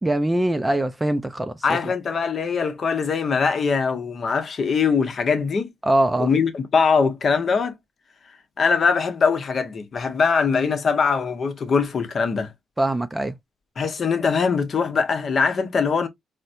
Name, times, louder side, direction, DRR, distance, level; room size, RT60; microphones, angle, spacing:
voice 1, 0.0-1.9 5.8-6.3 12.8-13.3, right 1 dB, 15° right, 0.4 m, -22 dB
voice 2, 1.6-5.7 6.2-7.7 8.6-12.5 13.8-16.1, left 5 dB, 45° left, 0.9 m, -22 dB
4.1 x 2.1 x 2.5 m
cardioid pair, 90°, 0 cm